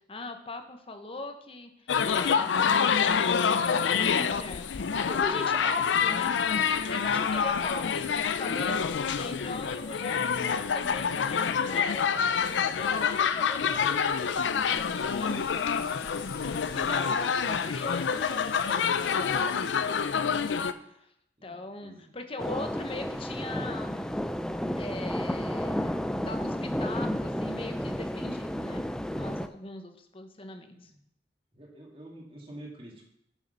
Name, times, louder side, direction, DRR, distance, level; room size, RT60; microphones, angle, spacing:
voice 1, 0.1-6.4 6.8-15.4 16.3-20.5 20.8-21.1 21.4-24.2 24.7-30.9, left 2 dB, 30° left, 6 dB, 0.9 m, -41 dB
sound 1, 1.9-20.7, left 6 dB, 90° left, 0.5 m, -27 dB
Domestic sounds home sounds, 14.0-20.1, left 5 dB, 55° left, 1.2 m, -50 dB
voice 2, 21.4-22.1 31.5-33.0, right 1 dB, 30° right, -1 dB, 2.0 m, -47 dB
sound 2, 22.4-29.5, equal, 5° left, 0.3 m, -32 dB
7.2 x 6.5 x 5.5 m, 0.77 s
head